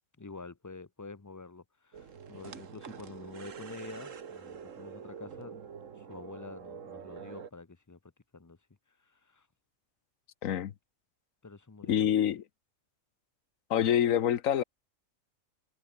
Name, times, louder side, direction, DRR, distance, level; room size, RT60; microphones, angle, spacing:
voice 1, 0.2-5.6 6.0-8.0 8.3-8.6 9.1-9.5 11.4-11.9, left 3 dB, 20° left, 0.6 m, -47 dB
sound 1, 1.9-7.5, right 7 dB, 70° right, 1.7 m, -46 dB
voice 2, 10.4-10.7 11.9-12.4 13.7-14.6, left 10 dB, 80° left, 1.3 m, -26 dB
omnidirectional pair, 1.4 m